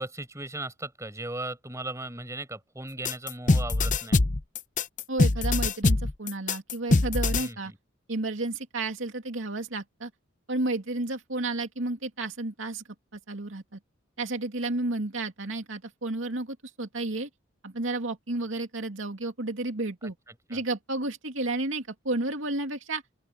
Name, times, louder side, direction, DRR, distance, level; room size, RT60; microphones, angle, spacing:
voice 1, 0.0-4.2 7.4-7.8 20.5-20.6, right 2 dB, 15° right, 5.9 m, -37 dB
sound 1, 3.0-7.5, left 2 dB, 40° left, 0.8 m, -23 dB
voice 2, 5.1-7.7 8.1-10.1 10.5-12.8 13.1-13.8 14.2-17.3 17.6-20.2 20.5-23.0, right 2 dB, 80° right, 2.5 m, -32 dB
open air
head